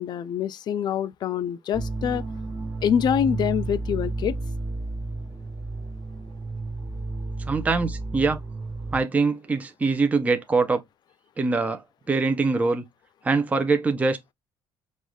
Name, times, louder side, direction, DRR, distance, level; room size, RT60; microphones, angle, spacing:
voice 1, 0.0-2.2 2.8-4.4, left 9 dB, 50° left, 0.4 m, -25 dB
sound 1, 1.7-9.0, right 3 dB, 35° right, 1.1 m, -32 dB
voice 2, 7.5-8.4 8.9-10.8 11.4-11.8 12.1-12.8 13.2-14.3, right 4 dB, 15° right, 0.6 m, -23 dB
5.3 x 2.4 x 3.1 m
cardioid pair, 135°, 10 cm